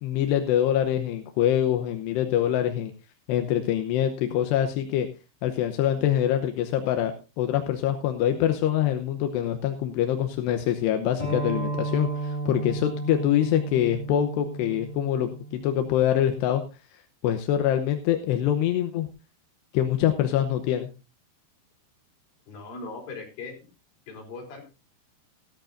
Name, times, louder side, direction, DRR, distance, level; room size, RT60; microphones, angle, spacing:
voice 1, 0.0-2.9 3.3-5.1 5.4-16.6 17.2-19.1 19.7-20.9, left 11 dB, 75° left, 6 dB, 2.6 m, -24 dB
sound 1, 11.2-16.4, right 2 dB, 10° left, 3.4 m, -33 dB
voice 2, 22.5-23.5 24.1-24.6, left 3 dB, 50° left, 1 dB, 5.2 m, -39 dB
17.5 x 12.0 x 2.6 m, 0.28 s
omnidirectional pair, 5.8 m